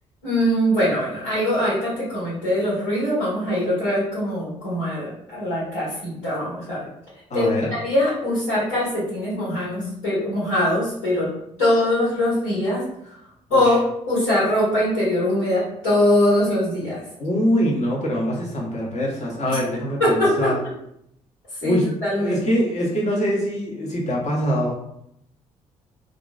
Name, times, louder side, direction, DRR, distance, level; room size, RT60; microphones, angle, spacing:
voice 1, 0.2-6.9 7.3-11.3 11.6-13.1 13.5-13.8 14.1-17.0 19.5-19.6 20.0-20.5 21.6-21.7 22.0-22.4, left 1 dB, 90° left, -12 dB, 1.4 m, -22 dB
voice 2, 7.3-7.7 13.5-13.6 17.2-20.6 21.6-21.9 22.2-24.7, equal, 45° left, -3 dB, 1.1 m, -23 dB
2.9 x 2.5 x 2.4 m, 0.74 s
hypercardioid pair, 50°, 16 cm